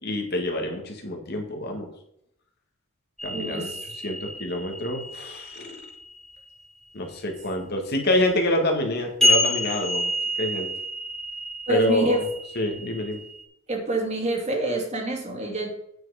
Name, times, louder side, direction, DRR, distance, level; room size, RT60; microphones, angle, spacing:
voice 1, 0.0-1.9 3.2-3.7 4.0-5.9 6.9-10.1 10.4-10.7 11.7-12.2 12.5-13.2, left 1 dB, 50° left, 3 dB, 1.8 m, -27 dB
sound 1, 3.2-6.4 9.2-13.4, equal, ahead, 2.1 m, -28 dB
voice 2, 3.3-3.8 11.7-12.2 13.7-15.7, right 1 dB, 30° right, 1 dB, 2.3 m, -27 dB
9.0 x 7.7 x 5.0 m, 0.75 s
head